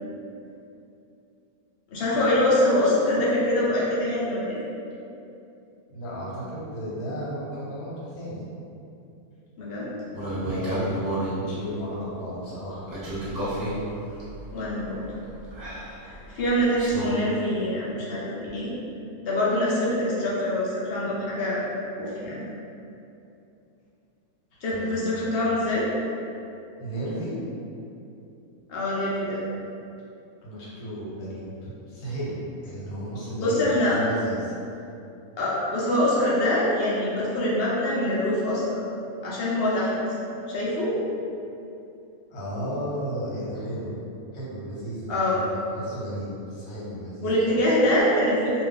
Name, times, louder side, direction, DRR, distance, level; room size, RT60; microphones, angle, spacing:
voice 1, 1.9-4.6 9.6-9.9 14.5-15.0 16.0-18.7 19.2-21.6 22.0-22.4 24.6-25.9 28.7-29.4 33.4-34.0 35.4-38.8 39.2-39.9 40.5-41.0 45.1-45.4 47.2-48.6, left 1 dB, 55° left, -7 dB, 0.7 m, -24 dB
voice 2, 5.9-8.5 10.4-12.8 24.7-25.2 26.8-27.3 30.4-32.4 32.6-34.5 42.3-43.9 44.3-47.3, equal, 80° left, -7 dB, 1.3 m, -34 dB
sound 1, 10.1-11.4 12.9-17.1, right 1 dB, 40° right, 0.6 m, -32 dB
2.5 x 2.4 x 3.6 m, 2.7 s
omnidirectional pair, 1.6 m